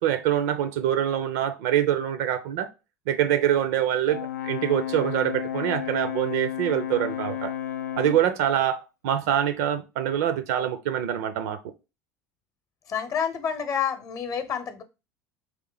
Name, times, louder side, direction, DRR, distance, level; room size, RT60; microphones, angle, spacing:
voice 1, 0.0-2.7 3.1-7.5 8.0-11.6, right 11 dB, 70° right, 0.5 m, -25 dB
Brass instrument, 4.1-8.3, left 11 dB, 90° left, 0.4 m, -32 dB
voice 2, 12.9-14.8, left 7 dB, 40° left, 0.8 m, -28 dB
3.2 x 3.1 x 3.9 m
hypercardioid pair, 75°, 9 cm